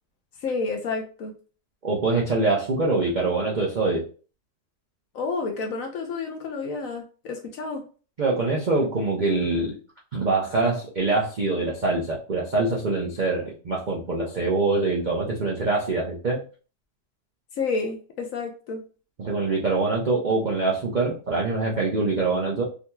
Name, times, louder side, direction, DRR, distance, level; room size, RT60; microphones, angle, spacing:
voice 1, 0.4-1.3 5.1-7.8 17.6-18.8, left 4 dB, 65° left, 3 dB, 0.9 m, -30 dB
voice 2, 1.8-4.0 8.2-9.8 10.1-16.4 19.2-22.6, right 3 dB, 55° right, -4 dB, 0.5 m, -24 dB
3.7 x 2.9 x 2.2 m, 0.37 s
omnidirectional pair, 1.8 m